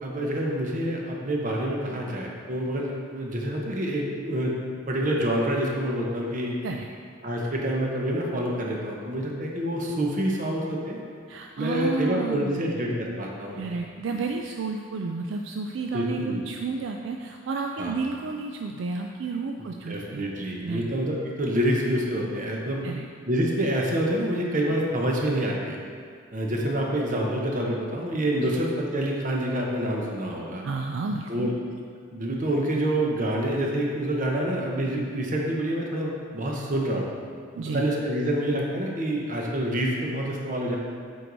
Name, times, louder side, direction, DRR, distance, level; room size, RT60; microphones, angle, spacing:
voice 1, 0.0-4.5 4.9-6.5 7.2-11.0 11.6-13.7 14.1-14.2 15.9-16.4 17.8-17.9 19.9-22.8 23.3-25.8 26.3-30.6 31.3-31.8 32.1-37.1 37.7-40.8, right 1 dB, 40° right, -1 dB, 0.9 m, -27 dB
voice 2, 11.3-12.8 13.6-20.3 20.6-20.9 22.8-23.1 28.5-28.6 30.6-31.5 37.5-37.9, right 4 dB, 65° right, 2 dB, 0.3 m, -31 dB
7.6 x 4.7 x 4.0 m, 2.1 s
head